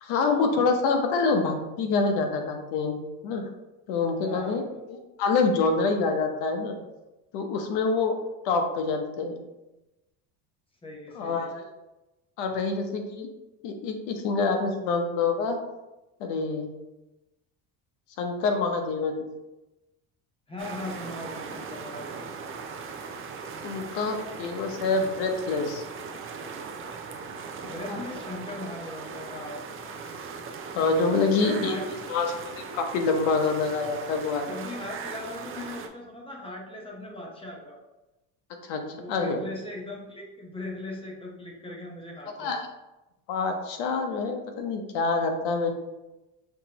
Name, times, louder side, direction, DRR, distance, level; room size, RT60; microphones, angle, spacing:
voice 1, 0.0-3.0 3.2-3.4 3.9-4.6 4.9-6.8 7.3-8.1 8.4-9.4 11.1-11.6 12.4-13.3 13.6-15.6 16.2-16.7 18.2-19.3 23.6-25.8 27.9-28.0 30.7-31.7 32.1-34.5 38.6-38.8 39.1-39.4 42.4-42.6 43.3-45.7, left 4 dB, 85° left, 4 dB, 0.9 m, -26 dB
voice 2, 4.2-4.6 10.8-11.5 20.5-22.2 27.6-29.6 31.4-31.8 34.5-37.8 38.9-42.5, left 2 dB, 15° left, -2 dB, 0.9 m, -39 dB
sound 1, 20.6-35.9, right 5 dB, 35° right, 0.5 m, -39 dB
5.8 x 3.0 x 2.9 m, 1.0 s
cardioid pair, 130°, 39 cm